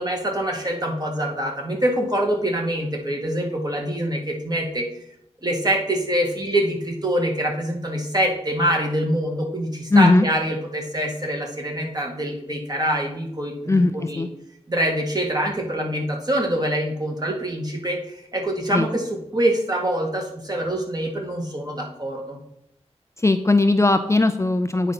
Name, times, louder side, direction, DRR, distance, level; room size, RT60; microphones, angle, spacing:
voice 1, 0.0-4.9 5.4-14.3 14.7-22.4, right 1 dB, 35° right, 0 dB, 2.0 m, -25 dB
voice 2, 9.9-10.3 13.7-14.3 18.7-18.9 23.2-24.9, left 2 dB, 25° left, 8 dB, 0.5 m, -18 dB
9.0 x 4.0 x 5.8 m, 0.76 s
wide cardioid pair, 65°, 11 cm